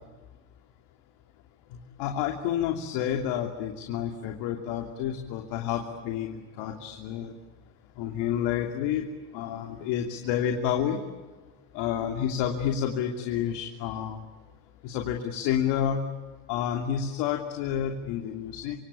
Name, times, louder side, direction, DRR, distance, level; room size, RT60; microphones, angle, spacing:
voice 1, 2.0-7.3 8.0-9.1 9.3-11.0 11.7-14.2 14.8-16.0 16.5-18.8, left 9 dB, 85° left, 3 dB, 3.1 m, -29 dB
26.5 x 25.5 x 8.6 m, 1.3 s
cardioid pair, 145°, 40 cm